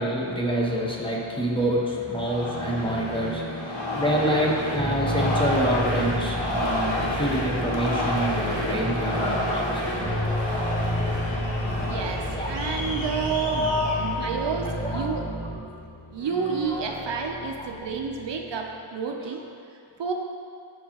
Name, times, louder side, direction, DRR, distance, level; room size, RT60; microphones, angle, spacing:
voice 1, 0.0-10.1 11.8-11.9 12.3-12.5 13.1-13.2 13.5-14.3 14.8-15.1 15.4-15.5 16.7-16.8 17.6-17.7, equal, 10° left, -3 dB, 0.6 m, -27 dB
sound 1, 2.2-15.0, left 1 dB, 65° left, 1.0 m, -31 dB
sound 2, 2.3-18.8, left 1 dB, 30° left, 0.9 m, -37 dB
sound 3, 4.7-15.6, equal, 5° right, 1.3 m, -31 dB
voice 2, 11.8-15.2 16.1-19.4 20.0-20.1, right 6 dB, 60° right, 3 dB, 0.6 m, -30 dB
7.3 x 4.6 x 2.9 m, 2.5 s
wide cardioid pair, 115°, 48 cm